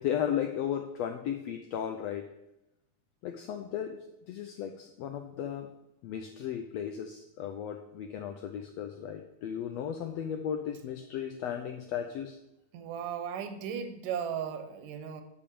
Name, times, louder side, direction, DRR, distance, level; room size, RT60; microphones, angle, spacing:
voice 1, 0.0-2.2 3.2-4.0 4.3-5.7 6.0-12.4, left 9 dB, 85° left, 5 dB, 1.5 m, -35 dB
voice 2, 12.7-15.2, right 8 dB, 85° right, 9 dB, 2.5 m, -36 dB
8.9 x 5.3 x 6.8 m, 0.86 s
omnidirectional pair, 3.7 m